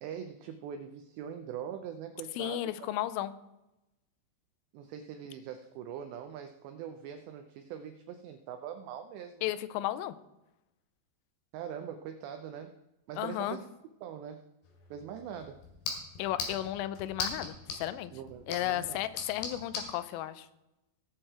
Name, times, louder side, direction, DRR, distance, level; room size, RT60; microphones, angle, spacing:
voice 1, 0.0-2.9 4.7-9.5 11.5-12.8 13.1-13.7 14.0-14.5 14.9-15.7 18.1-19.0, right 8 dB, 85° right, 7 dB, 2.5 m, -42 dB
voice 2, 2.4-3.3 9.4-10.2 13.2-13.6 16.2-18.1 18.5-20.5, left 14 dB, 85° left, 14 dB, 3.2 m, -34 dB
sound 1, 14.6-19.9, left 4 dB, 60° left, 3.7 m, -41 dB
18.0 x 6.9 x 4.3 m, 0.95 s
omnidirectional pair, 5.8 m